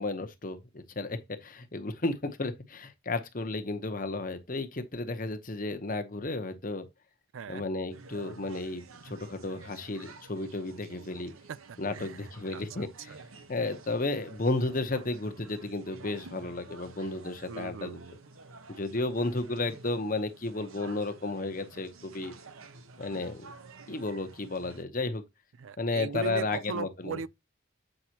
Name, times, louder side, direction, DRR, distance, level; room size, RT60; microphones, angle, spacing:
voice 1, 0.0-6.9 7.5-11.3 11.8-13.2 13.5-18.0 18.7-22.3 23.0-23.5 23.9-25.2 25.8-27.2, left 2 dB, 40° left, 0.9 m, -33 dB
sound 1, 7.9-24.8, right 3 dB, 90° right, 1.0 m, -50 dB
voice 2, 12.5-13.2 17.5-18.2 25.6-27.3, right 6 dB, 70° right, 0.4 m, -38 dB
7.8 x 5.5 x 2.9 m
head